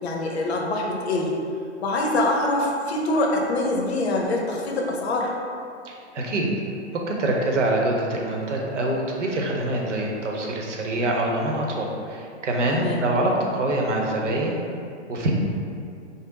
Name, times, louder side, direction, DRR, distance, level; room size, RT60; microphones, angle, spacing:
voice 1, 0.0-1.4 1.8-5.3 12.7-13.0, left 2 dB, 65° left, 0 dB, 0.7 m, -24 dB
voice 2, 5.8-6.5 7.1-14.6 15.1-15.3, right 1 dB, 90° right, -1 dB, 0.8 m, -25 dB
3.7 x 2.0 x 3.9 m, 2.4 s
hypercardioid pair, 135°, 35 cm